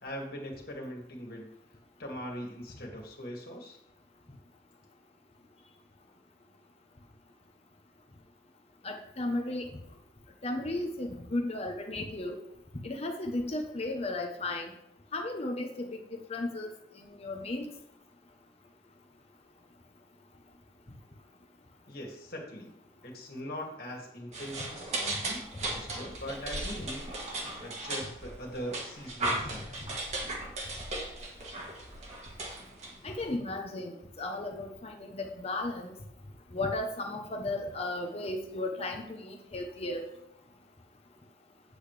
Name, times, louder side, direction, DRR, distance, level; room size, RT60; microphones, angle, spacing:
voice 1, 0.0-1.5 2.0-3.8 21.9-22.8 23.0-27.1 27.4-30.1, equal, 55° left, 0 dB, 2.2 m, -41 dB
voice 2, 8.8-9.7 10.4-12.4 12.8-14.7 15.1-16.7 17.0-17.7 33.0-35.9 36.5-40.1, left 2 dB, 35° left, 2 dB, 0.9 m, -35 dB
sound 1, 24.3-33.3, right 2 dB, 40° right, 1.6 m, -37 dB
8.5 x 7.9 x 3.3 m, 0.81 s
head